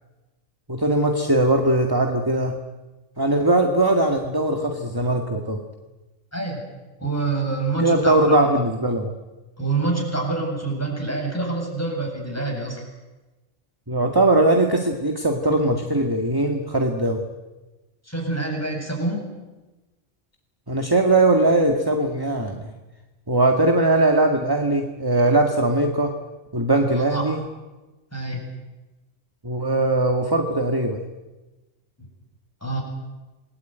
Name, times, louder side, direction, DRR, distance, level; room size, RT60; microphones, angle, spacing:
voice 1, 0.7-2.6 3.2-5.6 7.8-9.1 13.9-17.2 20.7-22.7 23.3-26.2 26.5-27.4 29.4-31.0, right 2 dB, 15° right, 4 dB, 2.0 m, -20 dB
voice 2, 7.0-8.4 9.6-12.8 18.0-19.3 26.9-27.2 28.1-28.4 32.0-32.1 32.6-32.8, right 3 dB, 10° left, -1 dB, 8.0 m, -26 dB
28.0 x 21.0 x 9.4 m, 1.1 s
omnidirectional pair, 1.4 m